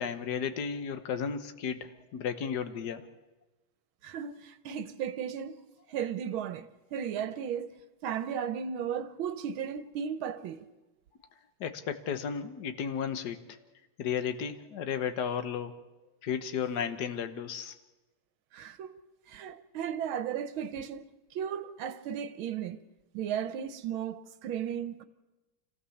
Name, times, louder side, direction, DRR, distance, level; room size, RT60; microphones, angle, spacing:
voice 1, 0.0-3.0 11.6-13.4 14.0-15.7 16.2-17.7, left 7 dB, 55° left, 1.5 m, -33 dB
voice 2, 4.0-5.6 5.9-7.7 8.0-10.7 18.5-19.0 19.3-21.1 21.3-22.8 23.1-25.0, right 8 dB, 80° right, 1.7 m, -35 dB
26.0 x 15.5 x 7.1 m
omnidirectional pair, 2.2 m